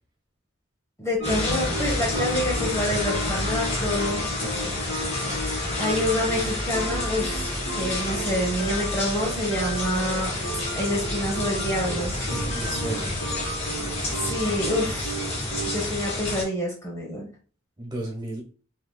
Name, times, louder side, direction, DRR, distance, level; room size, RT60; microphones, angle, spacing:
voice 1, 1.0-4.3 5.8-7.5 7.7-10.3 10.7-12.1 14.1-15.2 15.6-17.3, left 1 dB, 15° left, -2 dB, 1.0 m, -27 dB
sound 1, 1.2-16.0, right 1 dB, 80° left, 1.8 m, -35 dB
sound 2, 1.2-16.4, left 1 dB, 35° left, 2.0 m, -29 dB
voice 2, 4.4-5.2 12.3-13.2 13.7-14.4 17.8-18.4, right 1 dB, 25° right, -1 dB, 1.5 m, -35 dB
5.6 x 3.5 x 2.3 m, 0.40 s
head